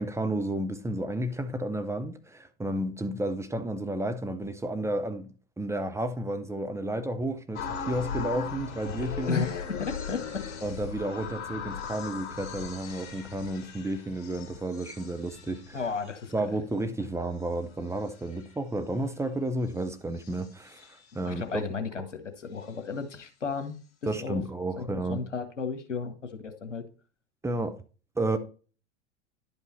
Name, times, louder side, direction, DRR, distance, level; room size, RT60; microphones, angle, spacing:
voice 1, 0.0-9.5 10.6-15.8 16.3-21.6 22.0-22.1 24.1-25.2 27.4-27.8 28.2-28.4, right 1 dB, 10° right, 0.9 m, -32 dB
sound 1, 7.5-16.7 17.3-18.5 19.8-19.9 20.2-21.1, left 6 dB, 55° left, 2.8 m, -39 dB
voice 2, 9.3-10.5 15.7-16.3 21.2-23.7 24.0-24.4 24.8-26.8, left 5 dB, 80° left, 1.7 m, -34 dB
11.0 x 5.5 x 4.2 m
figure-of-eight pair, 90°, 36 cm